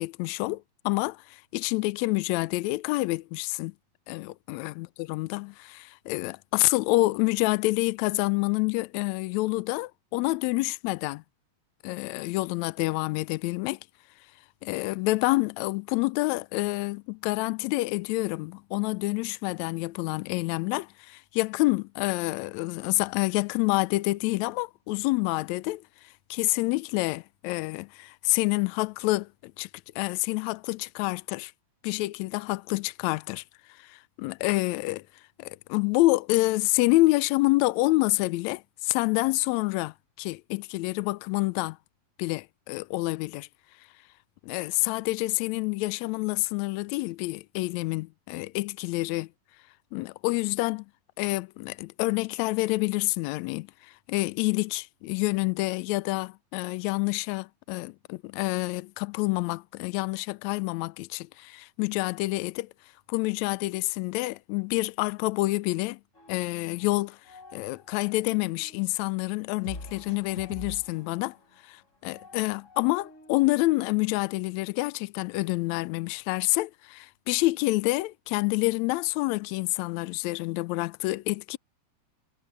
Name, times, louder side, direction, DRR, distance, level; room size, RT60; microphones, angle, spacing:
voice 1, 0.0-3.7 4.1-11.2 11.8-13.8 14.6-25.8 26.3-29.7 30.0-31.5 31.8-33.4 33.8-35.1 35.4-41.8 42.2-43.5 44.4-49.3 49.9-50.9 51.2-62.7 63.1-66.0 66.3-67.2 67.5-71.4 71.6-81.6, left 21 dB, 80° left, 1.8 m, -28 dB
sound 1, 66.1-66.9 67.1-68.8 69.6-73.7, left 2 dB, 25° left, 6.7 m, -46 dB
omnidirectional pair, 3.3 m